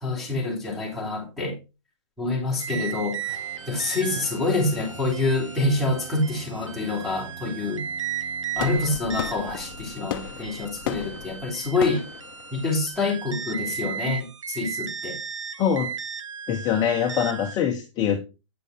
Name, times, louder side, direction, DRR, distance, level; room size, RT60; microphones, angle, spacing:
voice 1, 0.0-1.6 2.2-3.2 3.7-7.8 8.5-12.0 12.5-15.2, left 2 dB, ahead, 3.3 m, -26 dB
sound 1, 2.6-17.6, right 7 dB, 80° right, 1.0 m, -36 dB
sound 2, 3.3-12.9, right 3 dB, 40° right, 5.0 m, -46 dB
sound 3, 8.6-13.5, left 11 dB, 45° left, 0.7 m, -36 dB
voice 2, 15.6-15.9 16.5-18.2, left 8 dB, 25° left, 1.0 m, -23 dB
8.5 x 6.7 x 3.6 m
hypercardioid pair, 130°, 16 cm